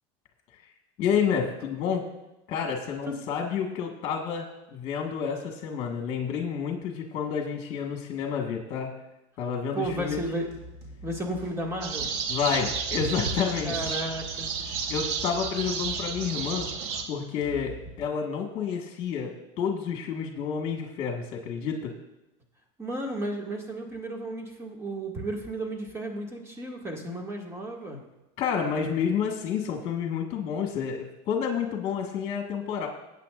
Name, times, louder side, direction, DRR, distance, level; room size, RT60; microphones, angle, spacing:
voice 1, 1.0-2.0 2.5-4.4 4.7-9.0 9.4-10.2 12.3-14.0 14.9-16.7 17.1-21.9 28.4-32.9, left 7 dB, 45° left, 1 dB, 1.6 m, -29 dB
voice 2, 9.7-10.5 11.0-12.1 13.6-14.5 22.8-28.0, right 1 dB, 20° right, 1 dB, 2.1 m, -33 dB
sound 1, 9.8-18.0, right 1 dB, 50° right, 2.6 m, -45 dB
sound 2, 11.8-17.0, right 5 dB, 70° right, 1.5 m, -32 dB
19.0 x 8.7 x 2.5 m, 0.95 s
supercardioid pair, 135°, 14 cm